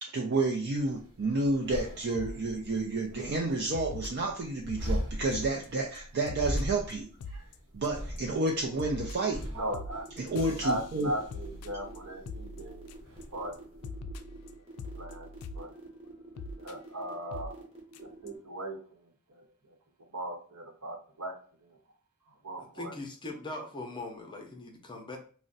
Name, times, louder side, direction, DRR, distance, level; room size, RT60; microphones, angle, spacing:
voice 1, 0.0-7.1 7.3-7.4 7.7-9.4 10.2-11.1, right 2 dB, 50° right, 1 dB, 0.4 m, -30 dB
sound 1, 0.8-13.8, equal, 65° right, 1.0 m, -40 dB
sound 2, 2.1-2.4 2.8-3.0 3.7-4.9 5.3-5.7 5.9-6.0 6.2-6.6 6.9-7.0 7.2-7.5 7.8-8.2 8.5-13.2 13.5-13.6 13.8-15.6 16.4-16.7 17.3-17.5 17.9-18.0 18.3-18.4, left 2 dB, 85° left, 0.3 m, -42 dB
sound 3, 9.1-18.4, right 2 dB, 25° right, 0.9 m, -49 dB
voice 2, 9.5-10.1 10.4-12.9 13.3-13.6 15.0-15.3 15.5-15.7 16.6-17.6 18.0-19.0 19.3-19.4 20.1-21.8 22.4-22.9, right 1 dB, 85° right, 2 dB, 0.9 m, -38 dB
voice 3, 22.6-25.2, left 2 dB, 20° left, 3 dB, 0.6 m, -41 dB
2.5 x 2.1 x 3.8 m, 0.42 s
head